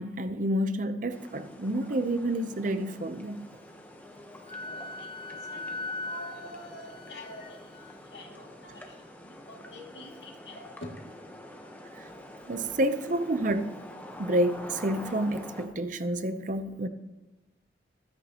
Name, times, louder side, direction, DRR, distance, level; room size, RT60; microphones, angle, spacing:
voice 1, 0.0-3.5 12.0-12.1 12.4-13.8 14.2-16.9, right 1 dB, 45° right, 0.7 m, -29 dB
sound 1, 1.1-15.7, left 1 dB, 10° left, 1.0 m, -46 dB
Wind instrument woodwind instrument, 4.5-7.9, left 2 dB, 30° left, 0.4 m, -39 dB
voice 2, 4.6-7.7 8.1-10.9, left 1 dB, 75° left, 2.5 m, -46 dB
21.5 x 9.5 x 3.0 m
head